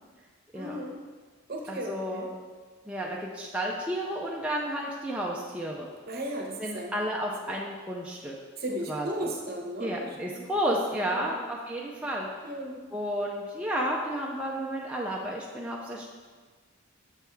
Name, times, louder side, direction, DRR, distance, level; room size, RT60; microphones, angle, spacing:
voice 1, 0.5-1.0 1.5-2.3 6.1-6.9 8.6-10.4 11.0-11.3 12.4-12.8, right 1 dB, 45° right, 1 dB, 0.8 m, -35 dB
voice 2, 1.7-2.3 2.9-5.9 6.6-8.3 8.9-9.1 9.8-12.3 12.9-16.1, equal, 5° right, -3 dB, 0.4 m, -32 dB
7.0 x 3.5 x 4.4 m, 1.4 s
head